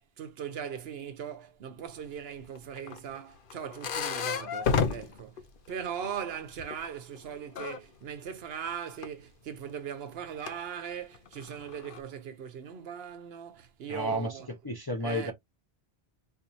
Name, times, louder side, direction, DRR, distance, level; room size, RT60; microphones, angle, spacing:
voice 1, 0.0-14.5 15.0-15.3, right 8 dB, 70° right, 0.9 m, -39 dB
sound 1, 2.4-6.2 6.5-7.8 9.0-9.1 10.2-10.5 11.1-12.0, left 6 dB, 60° left, 0.8 m, -32 dB
voice 2, 13.9-14.3 14.6-15.3, equal, 30° left, 0.5 m, -31 dB
4.5 x 2.5 x 2.6 m
omnidirectional pair, 1.1 m